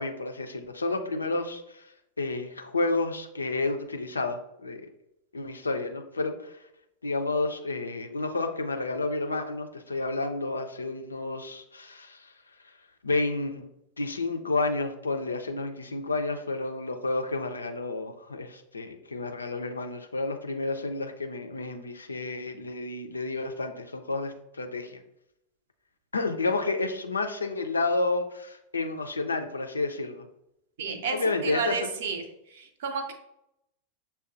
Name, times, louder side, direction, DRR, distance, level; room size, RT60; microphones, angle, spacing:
voice 1, 0.0-1.9 2.2-4.8 5.3-6.6 7.0-12.3 13.0-13.7 14.0-25.0 26.1-30.3 31.1-31.9, left 3 dB, 75° left, 6 dB, 0.4 m, -30 dB
voice 2, 30.8-31.2 31.4-32.2 32.8-33.1, right 5 dB, 55° right, 5 dB, 0.6 m, -30 dB
6.8 x 2.3 x 2.5 m, 0.81 s
figure-of-eight pair, 90°, 0 cm